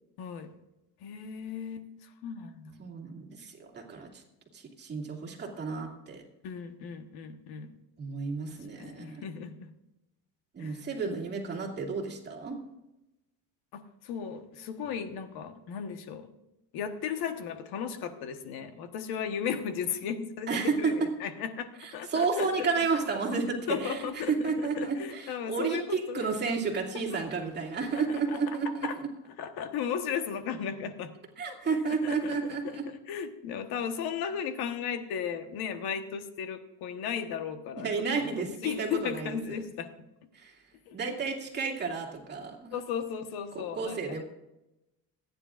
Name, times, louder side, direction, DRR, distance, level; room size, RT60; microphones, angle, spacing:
voice 1, 0.2-0.5 1.0-2.8 6.4-7.7 8.8-9.7 10.6-10.8 13.7-16.3 16.7-20.5 20.8-22.7 23.7-26.3 27.9-28.0 28.3-28.6 28.8-29.0 29.4-31.1 31.9-32.4 32.6-39.9 40.9-41.0 42.7-44.2, left 7 dB, 75° left, 8 dB, 1.4 m, -36 dB
voice 2, 2.8-4.2 4.5-6.2 8.0-9.2 10.5-12.6 20.5-20.8 21.8-28.9 31.4-32.8 37.8-39.4 40.3-40.6 40.9-42.7 43.7-44.2, right 4 dB, 25° right, -1 dB, 2.5 m, -32 dB
27.0 x 10.0 x 2.5 m, 0.94 s
cardioid pair, 160°, 38 cm